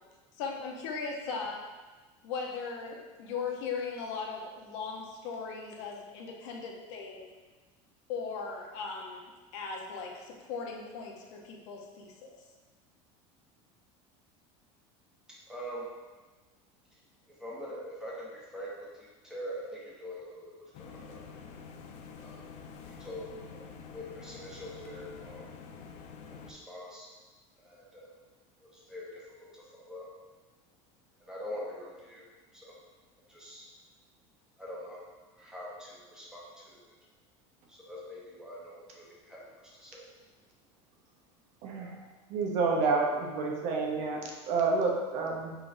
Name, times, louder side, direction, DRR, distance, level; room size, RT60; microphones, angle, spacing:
voice 1, 0.4-1.6 2.2-7.3 8.1-12.4, left 5 dB, 75° left, 0 dB, 0.8 m, -38 dB
voice 2, 15.5-15.9 17.4-18.7 19.0-21.2 22.2-22.5 23.0-23.6 23.9-25.5 26.3-27.1 27.6-28.1 28.6-29.2 29.5-30.1 31.2-32.2 32.5-32.7 33.3-33.6 34.6-35.0 35.3-36.8 37.7-40.0, equal, 5° right, -6 dB, 1.1 m, -44 dB
sound 1, 20.7-26.5, left 5 dB, 50° left, 0.4 m, -47 dB
voice 3, 41.6-42.0 42.3-45.6, right 4 dB, 55° right, 0 dB, 0.8 m, -29 dB
4.7 x 3.8 x 2.6 m, 1.3 s
supercardioid pair, 140°, 15 cm